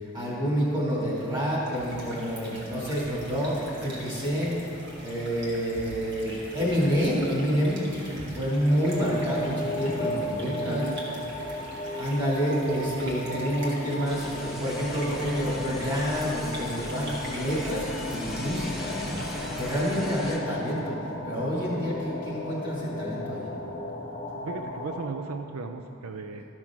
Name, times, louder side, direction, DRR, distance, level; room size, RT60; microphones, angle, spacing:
voice 1, 0.1-4.6 5.0-7.8 8.1-10.9 11.9-21.0 21.2-23.5, equal, 20° right, -6 dB, 2.5 m, -28 dB
sound 1, 1.5-20.1, equal, 55° right, 1.9 m, -43 dB
voice 2, 7.8-8.4 10.0-11.3 24.3-26.4, right 4 dB, 80° right, 6 dB, 0.5 m, -37 dB
sound 2, 8.7-25.0, left 1 dB, 45° left, 0.9 m, -36 dB
sound 3, 14.0-20.4, left 1 dB, ahead, 1.0 m, -39 dB
13.0 x 6.1 x 5.9 m, 2.9 s
head